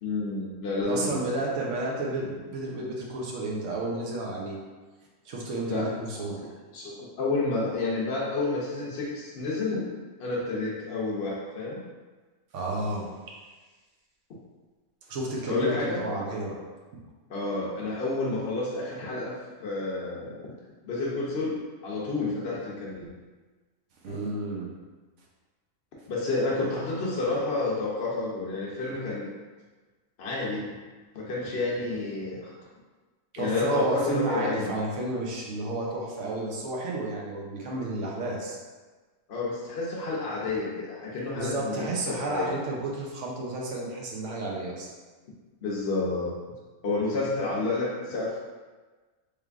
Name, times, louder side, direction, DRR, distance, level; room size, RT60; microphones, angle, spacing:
voice 1, 0.0-1.2 5.7-6.5 6.7-9.9 10.2-11.8 15.5-16.2 17.3-19.3 19.6-20.4 20.8-23.1 24.1-24.2 26.1-29.3 30.2-30.7 31.1-32.5 33.4-34.7 39.3-42.5 45.6-46.4 46.8-48.4, left 3 dB, 60° left, -5 dB, 0.7 m, -30 dB
voice 2, 0.9-4.6 5.2-6.4 12.5-13.1 15.1-16.5 24.0-24.7 33.3-38.6 41.3-44.9, right 2 dB, 65° right, -2 dB, 0.9 m, -31 dB
3.3 x 3.3 x 2.4 m, 1.3 s
omnidirectional pair, 1.5 m